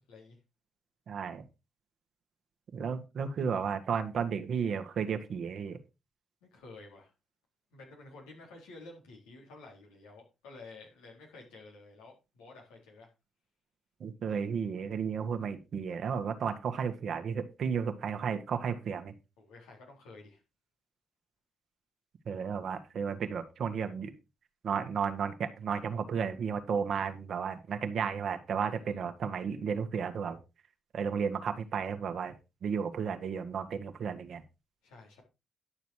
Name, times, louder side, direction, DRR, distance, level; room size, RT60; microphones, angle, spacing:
voice 1, 0.1-0.4 6.4-7.1 7.7-13.1 19.4-20.4 28.7-28.9 34.8-35.2, left 3 dB, 85° left, -1 dB, 4.0 m, -51 dB
voice 2, 1.1-1.4 2.7-5.8 14.0-19.1 22.3-24.1 24.6-30.4 30.9-32.3 32.6-34.4, right 6 dB, 65° right, 8 dB, 1.7 m, -33 dB
11.5 x 6.9 x 4.7 m, 0.27 s
hypercardioid pair, 45°, 0 cm